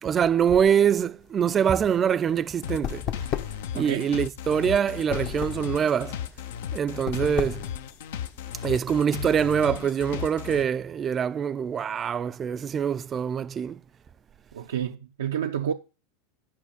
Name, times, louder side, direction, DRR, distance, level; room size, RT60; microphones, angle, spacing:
voice 1, 0.0-3.2 3.7-6.2 6.7-7.7 8.6-13.8, right 8 dB, 30° right, 0.4 m, -24 dB
sound 1, 1.2-8.8, left 10 dB, 50° left, 0.9 m, -36 dB
sound 2, 2.6-10.6, left 9 dB, 80° left, 0.7 m, -35 dB
voice 2, 3.7-4.1 14.5-15.7, right 9 dB, 90° right, 0.5 m, -29 dB
10.5 x 5.1 x 5.1 m
hypercardioid pair, 115°, 0 cm